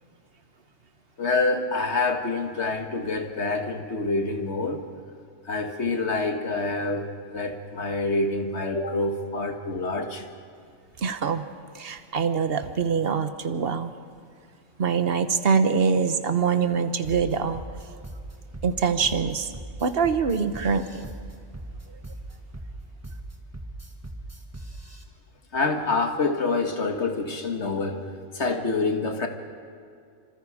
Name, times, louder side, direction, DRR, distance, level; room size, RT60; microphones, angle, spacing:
voice 1, 1.2-4.8 5.5-10.3 25.5-29.3, left 3 dB, 65° left, 5 dB, 1.9 m, -27 dB
voice 2, 11.0-11.5 11.7-13.9 14.8-17.6 18.6-19.5 19.8-21.1, right 6 dB, 55° right, 10 dB, 1.3 m, -24 dB
sound 1, 17.0-25.0, right 1 dB, 10° right, 1.7 m, -39 dB
27.0 x 26.0 x 5.0 m, 2.3 s
omnidirectional pair, 1.3 m